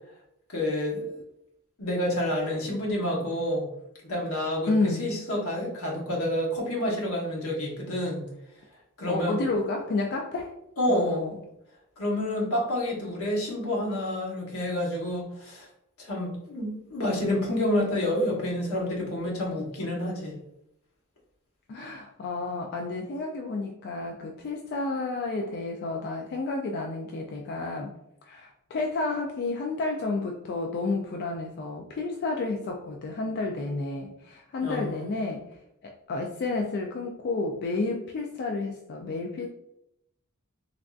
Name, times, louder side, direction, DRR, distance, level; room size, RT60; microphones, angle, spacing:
voice 1, 0.5-1.2 1.8-3.7 4.0-8.3 9.0-9.4 10.8-11.2 12.0-15.7 16.0-20.3 34.6-35.0, left 1 dB, 85° left, -3 dB, 1.0 m, -29 dB
voice 2, 4.7-5.0 9.1-10.5 10.9-11.4 21.7-27.9 28.2-35.4 35.8-39.5, left 3 dB, 50° left, 2 dB, 0.3 m, -31 dB
3.4 x 2.4 x 2.3 m, 0.80 s
head